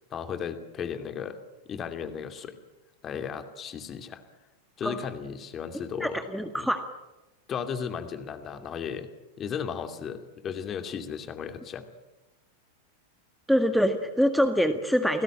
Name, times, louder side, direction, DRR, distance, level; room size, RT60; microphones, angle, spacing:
voice 1, 0.1-1.4 1.7-2.6 3.0-4.2 4.8-6.2 6.6-6.7 7.5-9.1 9.4-11.9, left 7 dB, 25° left, 8 dB, 2.5 m, -35 dB
voice 2, 6.0-6.8 13.5-15.2, equal, ahead, 7 dB, 1.7 m, -24 dB
29.0 x 19.5 x 8.8 m, 1.1 s
figure-of-eight pair, 90°, 0 cm